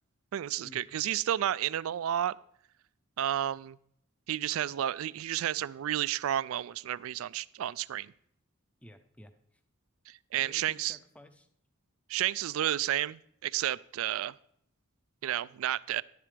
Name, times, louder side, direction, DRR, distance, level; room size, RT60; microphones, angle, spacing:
voice 1, 0.3-2.4 3.2-3.8 4.3-8.1 10.1-11.0 12.1-14.3 15.2-16.0, right 11 dB, 70° right, 20 dB, 0.3 m, -31 dB
voice 2, 8.8-9.6 10.4-11.5, equal, 5° left, 8 dB, 0.6 m, -53 dB
11.0 x 11.0 x 3.3 m, 0.70 s
head